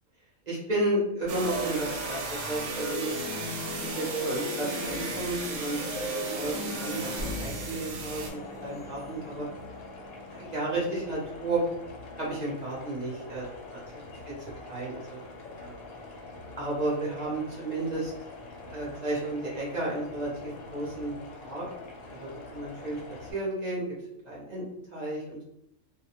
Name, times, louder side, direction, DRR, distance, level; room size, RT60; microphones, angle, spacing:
voice 1, 0.5-3.2 3.8-9.5 10.3-11.6 12.2-13.4 13.7-13.8 14.7-15.2 15.6-15.7 16.6-18.1 18.7-21.1 21.4-21.6 22.1-23.8 24.2-24.6 24.9-25.4, right 2 dB, 45° right, -6 dB, 0.6 m, -32 dB
sound 1, 1.3-8.3, right 3 dB, 85° right, 1.0 m, -35 dB
sound 2, 1.8-10.9, left 1 dB, 45° left, 0.6 m, -39 dB
sound 3, 8.0-23.3, left 3 dB, 80° left, 1.0 m, -45 dB
2.3 x 2.1 x 2.8 m, 0.79 s
omnidirectional pair, 1.5 m